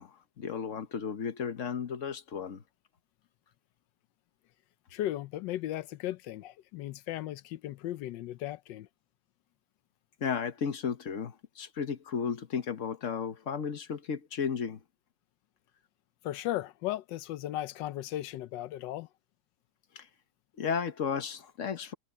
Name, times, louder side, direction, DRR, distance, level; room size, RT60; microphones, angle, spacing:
voice 1, 0.0-2.6 10.2-14.8 19.9-20.1 20.6-21.9, left 6 dB, 50° left, 1.3 m, -34 dB
voice 2, 4.9-8.9 16.2-19.1, left 14 dB, 90° left, 1.3 m, -36 dB
omnidirectional pair, 1.9 m